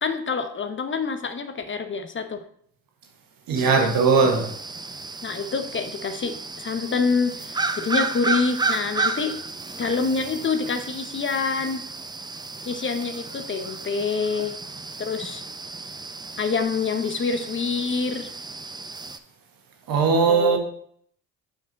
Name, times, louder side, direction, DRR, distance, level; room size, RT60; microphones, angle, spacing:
voice 1, 0.0-2.4 3.6-3.9 5.2-9.4 9.8-11.8 12.7-14.6 15.0-15.4 16.4-18.3 20.3-20.6, left 4 dB, 30° left, 0.7 m, -26 dB
sound 1, 3.5-19.2, right 3 dB, 10° right, 0.5 m, -32 dB
voice 2, 3.5-4.5 19.9-20.6, right 5 dB, 65° right, 1.4 m, -19 dB
5.3 x 5.2 x 3.9 m
hypercardioid pair, 50°, 37 cm